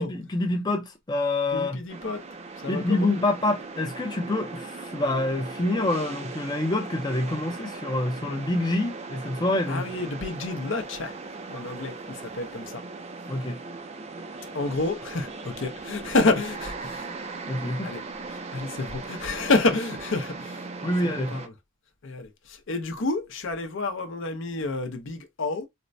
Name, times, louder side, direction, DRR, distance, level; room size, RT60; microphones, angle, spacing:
voice 1, 0.0-1.8 2.7-9.8 13.3-13.6 17.5-17.9 20.8-21.4, left 2 dB, 20° left, 0.5 m, -26 dB
voice 2, 1.5-2.2 2.6-3.1 9.7-11.1 11.5-12.8 14.5-17.1 17.8-18.0 18.5-20.6 21.1-21.5 22.0-25.7, left 3 dB, 65° left, 0.7 m, -29 dB
sound 1, 1.9-21.5, right 3 dB, 30° right, 0.4 m, -39 dB
4.2 x 2.1 x 2.6 m
head